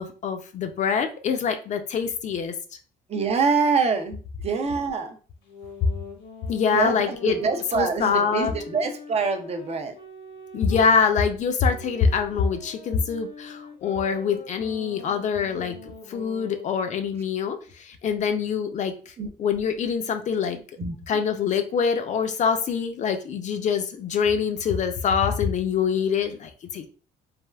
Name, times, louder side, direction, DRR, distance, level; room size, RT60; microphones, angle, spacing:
voice 1, 0.0-2.5 6.5-7.4 7.7-8.5 10.5-15.8 16.1-18.9 19.4-20.6 21.1-26.9, left 6 dB, 45° left, 7 dB, 0.4 m, -24 dB
voice 2, 3.1-5.2 6.7-9.9 19.2-19.3 20.8-20.9, right 5 dB, 40° right, 5 dB, 0.5 m, -25 dB
sound 1, 5.4-10.9 11.6-16.8, left 4 dB, 80° left, 0.9 m, -43 dB
3.3 x 2.3 x 2.2 m, 0.38 s
cardioid pair, 110°, 17 cm